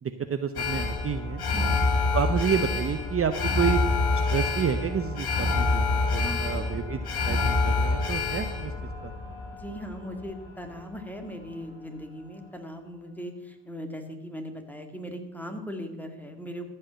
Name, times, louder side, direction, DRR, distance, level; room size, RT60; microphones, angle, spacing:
voice 1, 0.0-1.4 2.1-3.8 4.3-7.0 7.3-8.7 9.0-9.1, right 7 dB, 35° right, 9 dB, 0.7 m, -29 dB
Alarm, 0.6-10.8 11.2-11.3, left 3 dB, 70° left, 2.5 m, -27 dB
voice 2, 6.1-6.7 9.5-16.7, equal, 5° left, 5 dB, 2.0 m, -39 dB
14.0 x 5.5 x 7.4 m, 1.1 s
cardioid pair, 75°, 39 cm